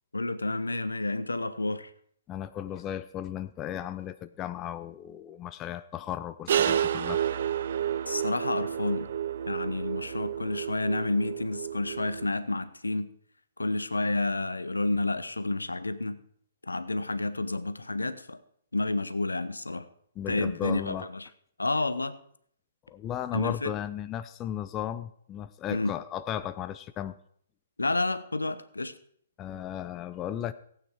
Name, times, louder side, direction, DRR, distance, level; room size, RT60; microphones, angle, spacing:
voice 1, 0.1-1.9 8.1-9.1 9.5-13.1 13.6-16.2 16.6-18.4 18.7-19.9 20.3-21.3 21.6-22.2 23.3-23.7 25.7-25.9 27.8-28.9, left 2 dB, 80° left, 13 dB, 0.9 m, -30 dB
voice 2, 2.3-7.2 20.2-21.1 22.9-27.1 29.4-30.5, left 10 dB, 20° left, 12 dB, 0.5 m, -35 dB
sound 1, 6.5-12.3, right 9 dB, 50° right, 0.5 m, -30 dB
16.0 x 8.8 x 4.7 m, 0.65 s
figure-of-eight pair, 125°, 0 cm